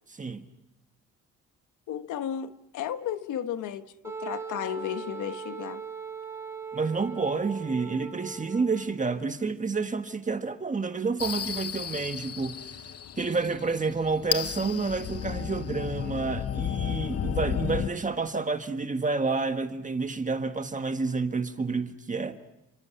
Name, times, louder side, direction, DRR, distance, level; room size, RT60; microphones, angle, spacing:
voice 1, 0.1-0.4 6.7-12.6 13.2-22.4, right 4 dB, 25° right, 1.5 m, -29 dB
voice 2, 1.9-5.8, left 9 dB, 80° left, 1.3 m, -34 dB
Wind instrument woodwind instrument, 4.0-9.2, right 6 dB, 10° right, 5.0 m, -39 dB
sound 1, 11.2-17.9, left 9 dB, 50° left, 0.9 m, -33 dB
29.0 x 27.0 x 5.9 m
cardioid pair, 90°, 30 cm